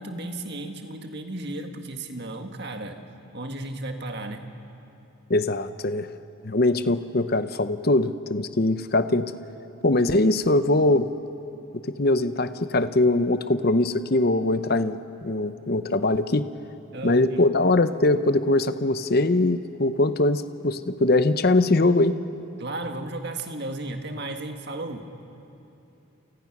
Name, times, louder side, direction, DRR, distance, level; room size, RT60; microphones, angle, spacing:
voice 1, 0.0-3.0 3.3-4.5 16.9-17.5 22.6-25.1, right 2 dB, 50° right, 5 dB, 1.7 m, -34 dB
voice 2, 5.3-6.1 6.4-9.3 9.8-11.1 12.0-16.5 17.0-22.1, left 2 dB, 45° left, 11 dB, 0.8 m, -22 dB
29.0 x 27.5 x 6.1 m, 2.9 s
head